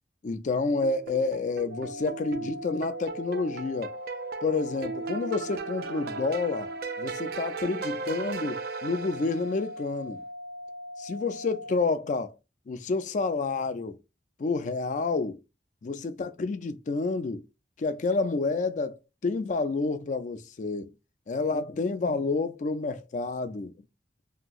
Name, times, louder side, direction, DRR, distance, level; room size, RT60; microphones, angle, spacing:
voice 1, 0.2-3.9 4.4-6.7 7.0-10.2 11.0-12.3 12.7-14.0 14.4-15.4 15.8-17.4 17.8-20.9 21.3-23.7, left 3 dB, 45° left, 0.3 m, -29 dB
sound 1, 0.8-9.7, right 5 dB, 60° right, 0.4 m, -37 dB
sound 2, 1.7-11.8, left 1 dB, 75° right, 0.8 m, -41 dB
2.9 x 2.6 x 2.3 m
head